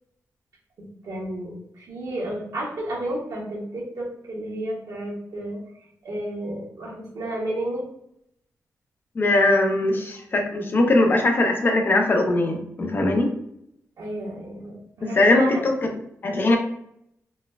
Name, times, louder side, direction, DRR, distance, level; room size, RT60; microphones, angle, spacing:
voice 1, 1.0-5.6 6.0-7.8 14.0-15.6, right 1 dB, 75° right, -3 dB, 1.1 m, -31 dB
voice 2, 9.2-13.3 15.0-15.9 16.2-16.6, left 2 dB, 35° left, 3 dB, 0.5 m, -20 dB
4.0 x 2.2 x 2.3 m, 0.75 s
wide cardioid pair, 135°, 6 cm